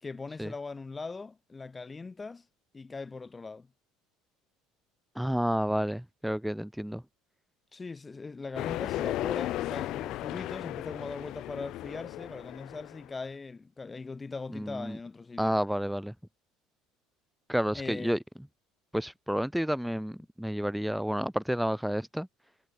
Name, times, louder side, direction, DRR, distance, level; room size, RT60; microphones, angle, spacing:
voice 1, 0.0-2.4 2.7-3.7 7.7-15.6 17.7-18.2, left 4 dB, 20° left, 1.9 m, -40 dB
voice 2, 5.2-7.0 14.5-15.0 15.4-16.1 17.5-18.2 18.9-22.3, equal, ahead, 1.8 m, -30 dB
sound 1, 8.6-13.1, left 15 dB, 60° left, 2.2 m, -35 dB
supercardioid pair, 115°, 0 cm